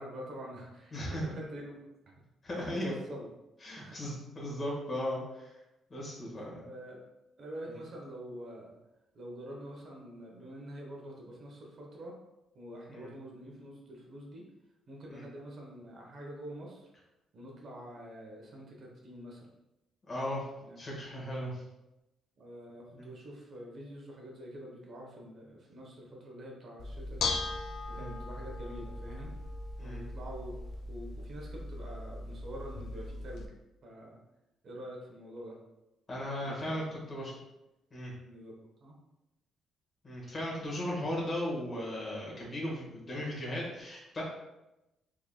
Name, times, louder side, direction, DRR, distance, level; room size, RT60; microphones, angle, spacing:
voice 1, 0.0-1.9 2.5-3.3 3.8-4.0 6.4-7.0 7.4-8.7 9.1-12.2 12.5-14.4 14.9-16.9 17.3-19.5 20.6-20.8 22.4-27.3 27.9-29.3 29.8-30.6 30.9-33.5 33.8-34.2 34.6-35.6 36.4-36.9 38.2-38.5 38.8-39.0, equal, 55° right, -1 dB, 1.0 m, -46 dB
voice 2, 0.9-1.4 2.4-2.9 3.6-5.5 5.9-6.5 12.9-13.1 15.1-15.2 20.1-20.5 20.8-21.6 22.9-23.1 27.9-28.1 29.8-30.0 36.1-37.3 37.9-38.1 40.0-44.2, left 1 dB, 35° left, -4 dB, 1.4 m, -36 dB
Bell / Dishes pots and pans, 26.8-33.5, left 3 dB, 65° left, 0.4 m, -39 dB
3.7 x 3.3 x 2.2 m, 0.95 s
cardioid pair, 90°, 0 cm